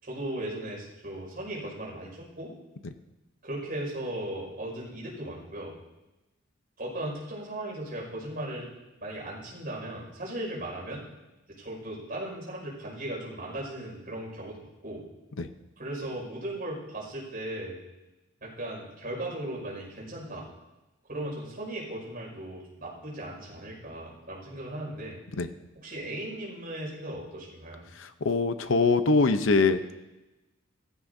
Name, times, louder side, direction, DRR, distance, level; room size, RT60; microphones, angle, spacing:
voice 1, 0.0-2.5 3.4-5.7 6.8-8.7 9.0-11.0 11.5-15.0 15.8-17.8 18.4-20.5 21.1-25.2 25.8-27.8, right 1 dB, 45° right, -3 dB, 5.5 m, -37 dB
voice 2, 27.9-29.9, left 3 dB, 70° left, 10 dB, 0.7 m, -24 dB
17.0 x 14.5 x 2.7 m, 1.0 s
head